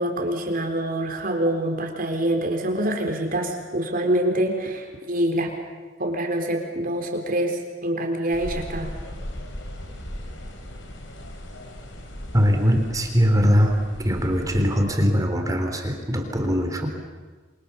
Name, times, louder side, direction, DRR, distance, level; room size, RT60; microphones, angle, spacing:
voice 1, 0.0-5.5 6.0-8.9, right 1 dB, 50° right, 3 dB, 4.1 m, -25 dB
sound 1, 8.3-14.8, equal, 80° left, 4.2 m, -37 dB
voice 2, 12.3-13.8 14.0-16.9, equal, 20° right, 4 dB, 3.5 m, -21 dB
29.5 x 24.0 x 7.1 m, 1.4 s
head